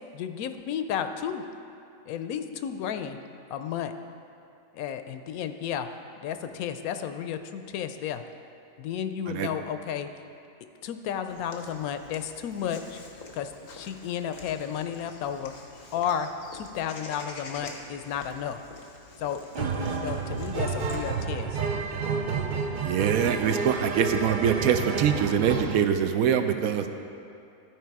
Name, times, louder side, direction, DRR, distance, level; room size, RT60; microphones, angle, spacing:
voice 1, 0.1-1.4 2.0-3.2 3.5-3.9 4.7-5.9 6.2-8.2 8.8-10.2 10.8-13.0 13.3-15.5 15.9-18.6 19.2-21.6, left 8 dB, 90° left, 9 dB, 1.0 m, -33 dB
Walk footsteps / Bird vocalization bird call bird song, 11.3-21.2, left 4 dB, 65° left, 1.3 m, -46 dB
sound 1, 19.5-25.8, right 5 dB, 60° right, 0.5 m, -30 dB
voice 2, 22.8-26.9, right 8 dB, 80° right, 8 dB, 1.0 m, -24 dB
13.0 x 4.7 x 4.7 m, 2.6 s
omnidirectional pair, 1.5 m